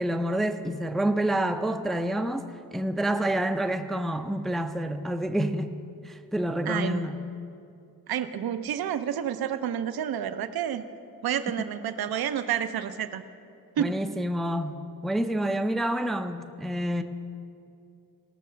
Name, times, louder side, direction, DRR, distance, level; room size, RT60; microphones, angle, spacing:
voice 1, 0.0-5.7 6.0-7.2 13.8-14.8 15.0-17.0, right 1 dB, ahead, 7 dB, 0.4 m, -28 dB
voice 2, 6.7-7.0 8.1-10.8 11.2-13.2 13.8-13.9, right 9 dB, 80° right, 10 dB, 0.7 m, -29 dB
18.0 x 6.6 x 6.4 m, 2.5 s
wide cardioid pair, 130°, 36 cm